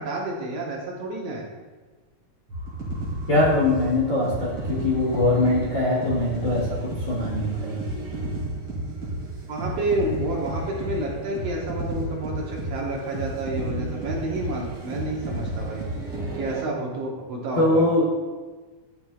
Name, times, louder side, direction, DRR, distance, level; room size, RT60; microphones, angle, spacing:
voice 1, 0.0-1.5 9.5-15.8 16.3-17.8, right 1 dB, 65° right, -2 dB, 1.8 m, -29 dB
sound 1, 2.5-16.6, right 1 dB, 45° right, 2.2 m, -32 dB
voice 2, 3.3-7.8 17.6-18.1, left 2 dB, 85° left, -7 dB, 0.7 m, -22 dB
11.0 x 4.3 x 2.3 m, 1.3 s
omnidirectional pair, 3.4 m